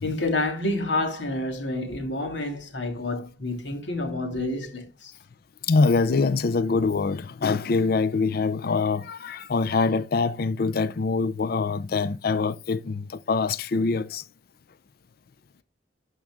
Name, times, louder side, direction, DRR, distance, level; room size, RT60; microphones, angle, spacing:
voice 1, 0.0-5.1, left 2 dB, 85° left, 2.9 m, -29 dB
voice 2, 5.7-14.2, left 4 dB, 55° left, 0.5 m, -24 dB
12.0 x 5.4 x 3.6 m
head